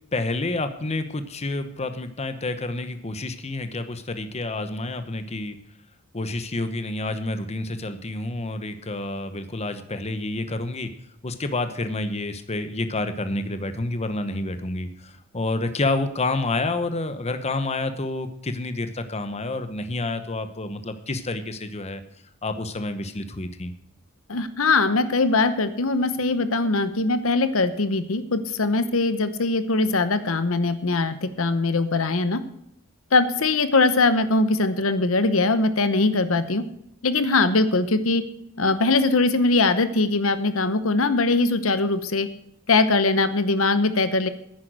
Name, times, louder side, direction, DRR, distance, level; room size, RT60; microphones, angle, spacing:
voice 1, 0.1-5.6 6.1-10.9 11.2-22.0 22.4-23.7, left 2 dB, 30° left, 10 dB, 0.9 m, -29 dB
voice 2, 24.3-32.4 33.1-36.6 37.0-38.2 38.6-42.3 42.7-44.3, left 3 dB, 70° left, 12 dB, 0.9 m, -21 dB
10.5 x 9.6 x 6.1 m, 0.76 s
head